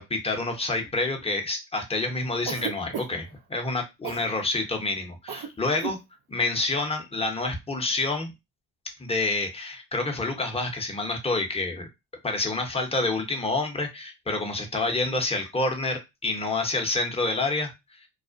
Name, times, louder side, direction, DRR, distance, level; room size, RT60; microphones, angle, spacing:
voice 1, 0.0-6.0 6.3-8.3 9.0-11.9 12.2-17.7, left 2 dB, 15° left, 3 dB, 0.8 m, -28 dB
Cough, 2.5-3.3 4.0-4.3 5.3-5.5 5.8-6.0, right 7 dB, 55° right, 0.6 m, -34 dB
2.3 x 2.1 x 2.5 m, 0.22 s
supercardioid pair, 60°, 44 cm